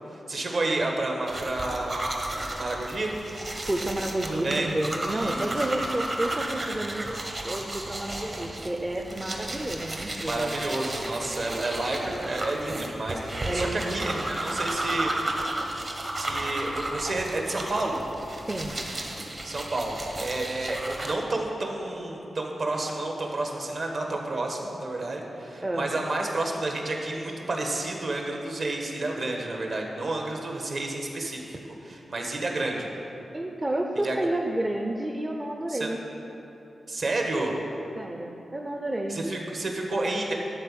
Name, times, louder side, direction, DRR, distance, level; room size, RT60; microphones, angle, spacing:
voice 1, 0.3-2.1 2.5-3.1 4.3-4.7 5.1-5.5 10.2-15.1 16.1-18.0 19.4-32.9 34.0-34.2 35.7-35.9 36.9-37.5 39.1-40.3, right 2 dB, 55° right, 1 dB, 1.4 m, -30 dB
sound 1, 1.3-21.1, right 1 dB, 35° right, 1.0 m, -33 dB
voice 2, 3.6-10.6 13.5-14.2 18.4-18.7 25.6-25.9 33.3-36.0 38.0-39.2, right 1 dB, 20° right, 2 dB, 0.5 m, -30 dB
12.0 x 4.2 x 7.5 m, 2.9 s
wide cardioid pair, 125°, 0 cm